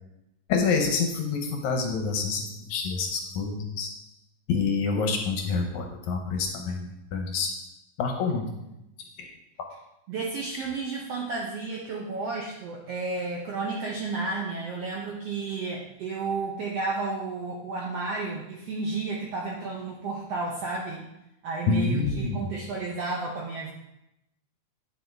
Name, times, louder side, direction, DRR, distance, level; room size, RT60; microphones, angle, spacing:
voice 1, 0.5-3.9 4.5-7.5 8.0-8.7 9.2-9.4 10.6-10.7 21.7-22.5, left 4 dB, 70° left, 3 dB, 2.1 m, -27 dB
voice 2, 10.1-21.0 21.4-23.7, right 3 dB, 70° right, -2 dB, 1.4 m, -32 dB
9.3 x 7.1 x 3.4 m, 0.86 s
omnidirectional pair, 3.8 m